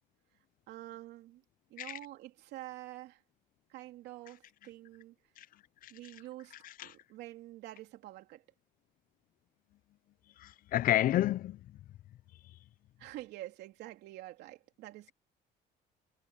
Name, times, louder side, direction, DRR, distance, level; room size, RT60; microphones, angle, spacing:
voice 1, 0.7-1.4 1.7-3.2 3.7-5.1 5.9-6.5 6.8-8.4 13.0-15.1, right 16 dB, 85° right, 3.1 m, -47 dB
voice 2, 6.6-6.9 10.4-11.6, left 13 dB, 55° left, 0.5 m, -30 dB
cardioid pair, 110°, 17 cm